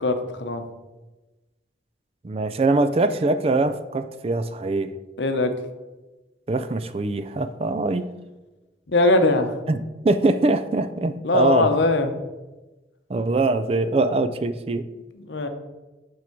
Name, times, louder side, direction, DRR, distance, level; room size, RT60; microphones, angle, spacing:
voice 1, 0.0-0.6 5.2-5.5 8.9-9.6 11.2-12.1 15.1-15.5, left 2 dB, 75° left, 7 dB, 0.8 m, -21 dB
voice 2, 2.2-4.9 6.5-8.0 9.7-11.7 13.1-14.9, right 2 dB, 35° right, 11 dB, 0.4 m, -23 dB
8.3 x 4.6 x 4.6 m, 1.1 s
head